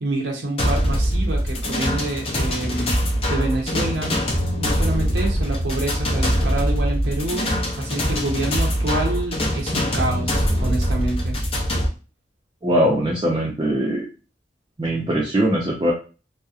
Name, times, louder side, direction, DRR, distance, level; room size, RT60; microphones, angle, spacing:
voice 1, 0.0-2.9 3.3-4.1 4.6-7.5 7.8-11.4, right 2 dB, 75° right, 0 dB, 0.6 m, -27 dB
sound 1, 0.6-11.9, equal, 35° left, 0.5 m, -23 dB
voice 2, 12.6-14.1 14.8-15.9, equal, 25° right, -4 dB, 0.4 m, -21 dB
2.7 x 2.0 x 2.3 m, 0.33 s
head